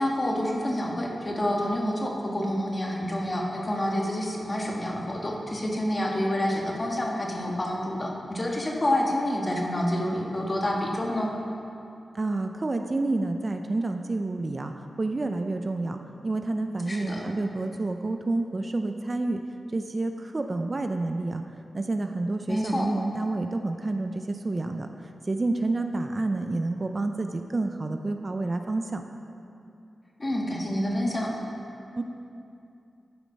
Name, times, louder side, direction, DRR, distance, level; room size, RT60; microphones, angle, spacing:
voice 1, 0.0-11.3 16.9-17.3 22.5-22.9 30.2-31.3, left 1 dB, 35° left, -1 dB, 1.6 m, -28 dB
voice 2, 12.1-16.0 16.2-19.4 19.7-21.4 21.7-24.9 25.3-29.0 32.0-32.1, right 2 dB, 40° right, 6 dB, 0.5 m, -29 dB
11.0 x 5.0 x 5.4 m, 2.7 s
cardioid pair, 55°, 0 cm